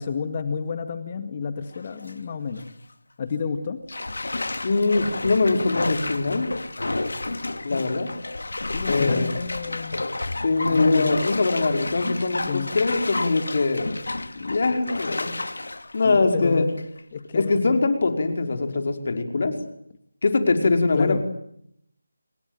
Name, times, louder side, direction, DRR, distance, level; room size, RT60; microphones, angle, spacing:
voice 1, 0.0-2.7 3.2-3.8 8.7-10.1 10.7-11.3 12.5-12.8 16.0-16.8 17.1-17.7 21.0-21.2, left 5 dB, 30° left, 9 dB, 2.0 m, -30 dB
Bathtub (filling or washing), 1.7-2.1 2.6-2.7 3.9-17.0 17.4-17.5, left 2 dB, 70° left, 2.6 m, -30 dB
voice 2, 4.6-6.5 7.6-8.1 8.9-9.4 10.4-13.9 14.4-15.3 15.9-16.7 17.3-19.6 20.2-21.2, left 3 dB, 45° left, 6 dB, 5.3 m, -22 dB
28.0 x 22.5 x 9.2 m, 0.74 s
figure-of-eight pair, 160°, 0 cm